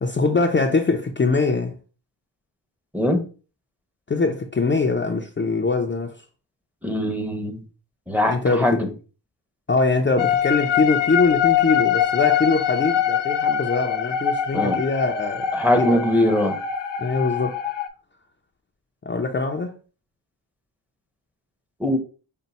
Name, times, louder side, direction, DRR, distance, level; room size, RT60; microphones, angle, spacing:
voice 1, 0.0-1.7 4.1-6.2 8.3-8.8 9.7-15.5 15.8-16.0 17.0-17.6 19.1-19.7, left 3 dB, 25° left, 0.5 m, -22 dB
voice 2, 6.8-7.6 8.1-8.9 14.5-14.8 15.5-16.6 21.8-22.0, left 1 dB, 5° right, 0.8 m, -21 dB
sound 1, 10.2-17.9, left 9 dB, 75° left, 0.7 m, -23 dB
5.4 x 2.2 x 4.0 m
cardioid pair, 80°, 43 cm